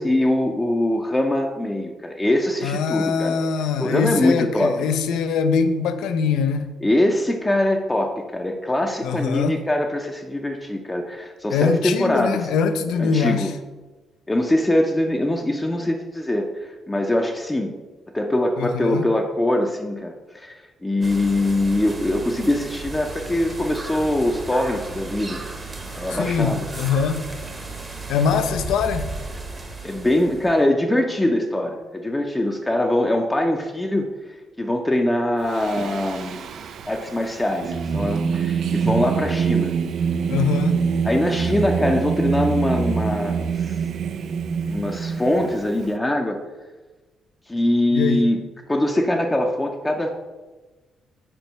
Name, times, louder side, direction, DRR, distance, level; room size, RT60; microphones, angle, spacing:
voice 1, 0.0-3.4 3.8-4.8 6.8-12.5 13.0-13.5 14.3-17.7 18.1-25.4 25.9-26.7 29.8-34.1 34.6-36.5 36.9-39.7 41.0-43.8 44.7-46.4 47.5-48.4 48.7-50.1, left 1 dB, 15° left, 2 dB, 0.5 m, -22 dB
voice 2, 2.6-6.7 9.0-9.6 11.5-13.5 18.6-19.0 26.1-27.2 28.1-29.1 40.3-40.8 47.9-48.2, left 6 dB, 85° left, 9 dB, 0.5 m, -23 dB
sound 1, 21.0-30.6, right 3 dB, 25° right, 0.9 m, -34 dB
Singing, 35.5-45.9, right 6 dB, 65° right, 0.3 m, -25 dB
4.6 x 4.5 x 5.3 m, 1.2 s
cardioid pair, 90°, 0 cm